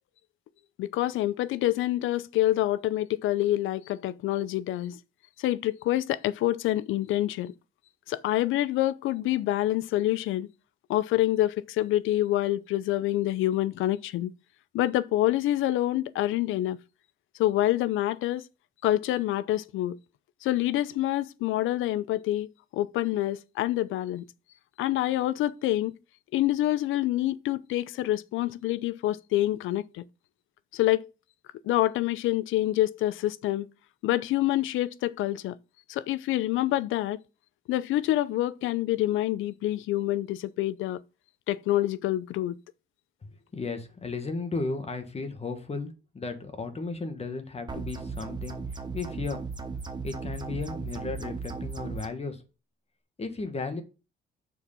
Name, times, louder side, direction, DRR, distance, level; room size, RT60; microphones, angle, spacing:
voice 1, 0.8-5.0 5.4-7.5 8.1-10.5 10.9-14.3 14.7-16.8 17.4-18.5 18.8-20.0 20.4-24.2 24.8-25.9 26.3-30.0 30.7-31.1 31.6-33.7 34.0-35.6 35.9-37.2 37.7-41.0 41.5-42.5, left 14 dB, 85° left, 0.6 m, -27 dB
voice 2, 43.5-48.6 48.9-49.4 50.0-52.4 53.2-53.8, left 3 dB, 30° left, 1.7 m, -34 dB
sound 1, 47.7-52.1, right 4 dB, 20° right, 1.1 m, -36 dB
6.6 x 4.7 x 5.5 m
cardioid pair, 90°, 20 cm